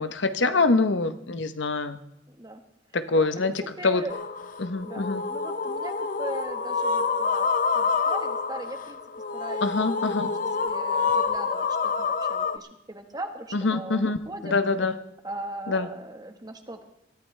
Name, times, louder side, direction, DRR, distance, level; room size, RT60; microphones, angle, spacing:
voice 1, 0.0-2.0 2.9-4.1 4.6-5.2 9.6-10.3 13.5-14.2 14.4-15.0 15.7-15.9, left 3 dB, 70° left, 10 dB, 0.9 m, -25 dB
voice 2, 2.3-2.6 3.1-4.2 4.8-9.0 9.3-14.5 15.2-16.8, right 1 dB, 20° right, 6 dB, 1.3 m, -40 dB
sound 1, 4.1-12.6, left 5 dB, 45° left, 0.6 m, -27 dB
22.0 x 14.5 x 3.3 m, 0.85 s
head